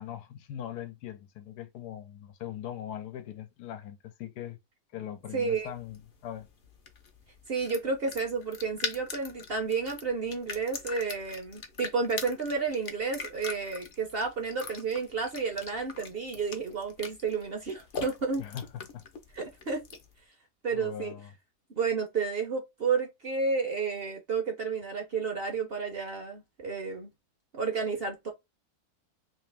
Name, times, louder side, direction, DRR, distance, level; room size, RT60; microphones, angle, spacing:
voice 1, 0.0-4.6 4.9-6.5 18.4-19.0 20.7-21.3, left 10 dB, 85° left, 1.2 m, -40 dB
sound 1, 5.3-20.2, left 5 dB, 50° left, 0.7 m, -43 dB
voice 2, 5.3-5.7 7.5-18.5 19.3-19.8 20.6-21.1 21.8-27.1 27.5-28.3, right 5 dB, 45° right, 0.8 m, -31 dB
3.2 x 2.9 x 3.3 m
omnidirectional pair, 1.7 m